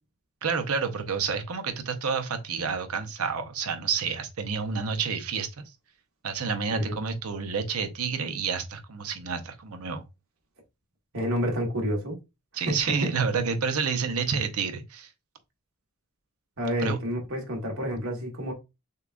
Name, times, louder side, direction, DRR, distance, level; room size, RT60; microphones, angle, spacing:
voice 1, 0.4-5.6 6.2-10.0 12.5-15.1 16.8-17.0, right 5 dB, 85° right, 0.7 m, -29 dB
voice 2, 11.1-12.2 12.7-13.1 16.6-18.5, equal, 65° right, 1.4 m, -29 dB
6.5 x 2.3 x 2.5 m
head